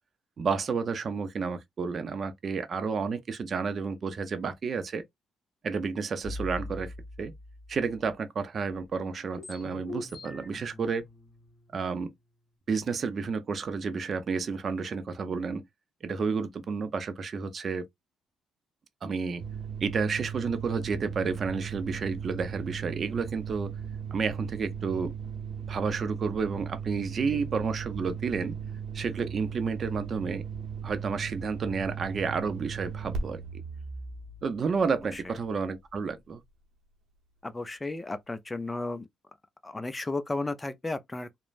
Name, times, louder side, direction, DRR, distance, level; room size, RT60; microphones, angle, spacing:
voice 1, 0.4-5.0 5.6-7.3 7.7-11.0 11.7-12.1 12.7-15.6 16.0-17.8 19.0-19.4 19.8-23.7 24.1-25.2 25.7-28.5 28.9-30.4 30.8-33.4 34.4-36.4, right 5 dB, 50° right, 0.6 m, -31 dB
sound 1, 6.2-8.1 8.6-8.7 9.0-12.5, left 2 dB, 35° left, 1.3 m, -43 dB
sound 2, 19.4-35.7, right 6 dB, 80° right, 0.8 m, -37 dB
voice 2, 37.4-39.1 39.6-41.4, left 2 dB, 20° left, 0.5 m, -34 dB
3.1 x 2.1 x 2.5 m
cardioid pair, 90°, 0 cm